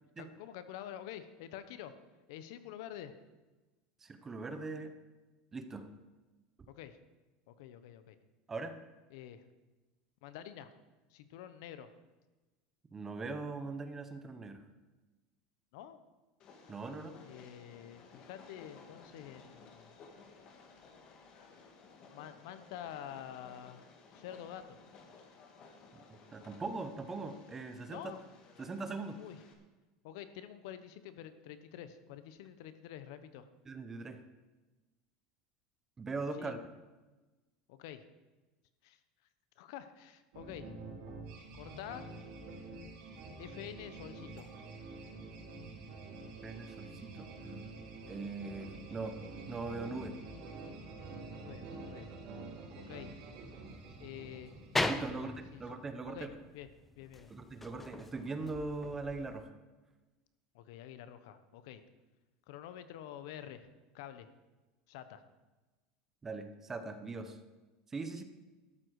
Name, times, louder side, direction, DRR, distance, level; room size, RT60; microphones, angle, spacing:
voice 1, 0.2-1.9 2.3-3.1 6.7-7.0 7.5-8.2 9.1-9.5 10.2-10.7 11.1-11.9 15.7-16.0 17.2-19.9 22.1-23.8 24.1-24.8 27.9-28.2 29.1-29.5 30.0-33.5 36.4-36.6 37.7-38.1 38.8-39.0 39.6-40.7 41.5-42.1 43.4-44.5 51.3-52.1 52.8-53.1 54.0-54.5 55.1-55.6 56.1-56.7 57.0-57.3 60.5-61.8 62.5-63.7 63.9-64.3 64.9-65.2 68.2-68.3, left 10 dB, 70° left, 12 dB, 1.1 m, -48 dB
voice 2, 4.0-4.9 5.5-5.9 8.5-8.8 12.9-14.6 16.7-17.2 25.9-26.0 26.3-28.0 28.6-29.2 33.7-34.2 36.0-36.6 46.4-47.3 48.1-49.2 49.5-50.2 54.9-56.2 57.3-59.5 66.2-67.4 67.9-68.2, right 3 dB, 15° right, 9 dB, 1.0 m, -40 dB
Train, 16.4-29.5, left 4 dB, 35° left, 1.8 m, -57 dB
sound 1, 40.3-55.8, right 3 dB, 55° right, 4.2 m, -48 dB
sound 2, 53.7-59.5, left 2 dB, 5° left, 0.6 m, -40 dB
13.0 x 12.0 x 4.9 m, 1.2 s
supercardioid pair, 160°, 2 cm